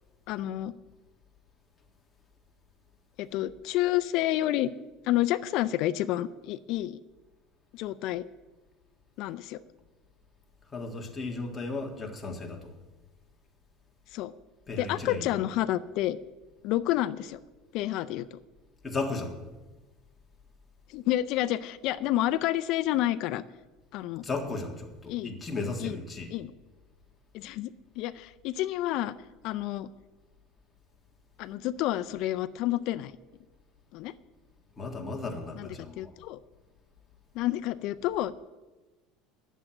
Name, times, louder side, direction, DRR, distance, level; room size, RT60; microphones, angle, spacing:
voice 1, 0.3-0.7 3.2-4.7 5.0-7.0 7.7-8.2 9.2-9.6 14.1-14.3 14.8-16.2 16.6-17.4 17.7-18.4 20.9-23.4 23.9-24.2 25.1-25.3 25.8-26.0 26.3-26.5 27.3-29.1 29.4-29.9 31.4-33.1 33.9-34.1 35.6-35.7 36.0-36.4 37.3-38.3, left 14 dB, 55° left, 14 dB, 0.5 m, -29 dB
voice 2, 10.7-12.7 14.7-15.2 18.8-19.4 24.2-26.3 34.8-36.1, left 3 dB, 15° left, 0 dB, 1.7 m, -35 dB
10.0 x 7.3 x 8.9 m, 1.2 s
cardioid pair, 155°, 0 cm